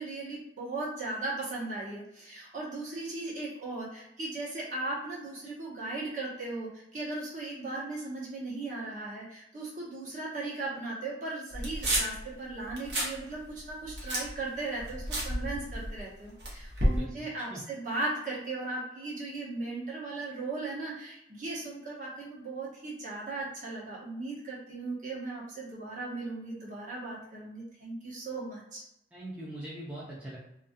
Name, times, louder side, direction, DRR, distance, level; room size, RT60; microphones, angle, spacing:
voice 1, 0.0-28.8, right 2 dB, 45° right, -5 dB, 0.9 m, -37 dB
sound 1, 11.5-12.2 12.6-13.2 13.5-16.0 16.4-17.0, right 1 dB, 75° right, 0.8 m, -31 dB
voice 2, 16.9-17.6 29.1-30.4, right 1 dB, 10° right, -8 dB, 0.5 m, -42 dB
2.4 x 2.2 x 2.5 m, 0.82 s
head